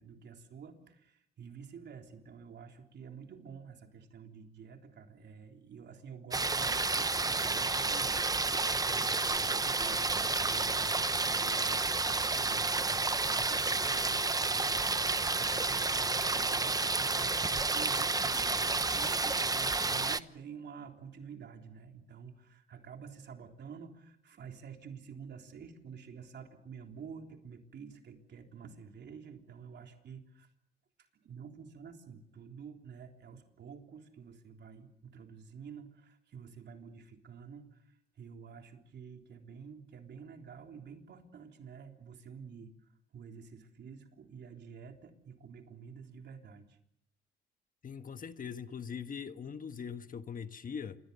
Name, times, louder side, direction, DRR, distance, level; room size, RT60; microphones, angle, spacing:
voice 1, 0.0-30.5 31.2-46.8, right 6 dB, 60° right, 3.6 m, -49 dB
sound 1, 6.3-20.2, right 3 dB, 20° right, 0.9 m, -30 dB
voice 2, 47.8-51.0, left 6 dB, 45° left, 1.4 m, -41 dB
27.5 x 23.0 x 7.0 m
cardioid pair, 90°, 20 cm